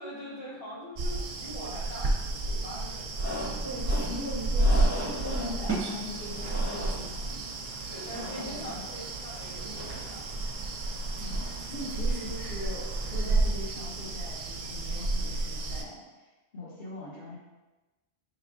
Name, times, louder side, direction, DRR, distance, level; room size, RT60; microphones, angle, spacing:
voice 1, 0.0-3.2 7.9-10.4, equal, 35° left, -8 dB, 1.5 m, -43 dB
sound 1, 1.0-15.8, right 2 dB, 60° right, 0.6 m, -31 dB
sound 2, 3.1-13.4, left 1 dB, 80° left, 2.0 m, -42 dB
voice 2, 3.6-7.4 8.3-8.9 11.2-16.0 16.5-17.4, left 1 dB, 65° left, -6 dB, 1.6 m, -40 dB
sound 3, 5.7-11.4, right 3 dB, 15° right, 0.6 m, -41 dB
5.6 x 3.3 x 2.5 m, 1.1 s
omnidirectional pair, 1.1 m